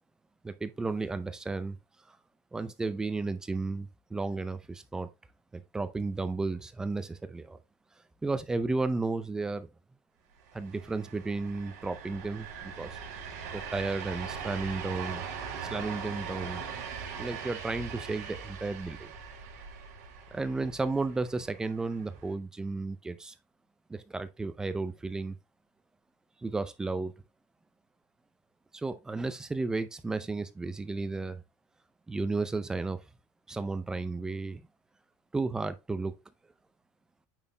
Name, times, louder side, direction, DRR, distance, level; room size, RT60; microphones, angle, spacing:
voice 1, 0.4-1.8 2.5-5.1 5.5-7.6 8.2-9.7 10.5-13.1 13.5-15.2 15.7-16.6 17.2-19.1 20.3-23.3 23.9-25.4 26.4-27.1 28.7-31.4 32.1-33.0 33.5-34.6 35.3-36.1, right 3 dB, 5° right, 0.5 m, -33 dB
sound 1, 10.4-22.3, right 6 dB, 90° right, 2.3 m, -41 dB
8.8 x 4.1 x 2.7 m
cardioid pair, 170°, 9 cm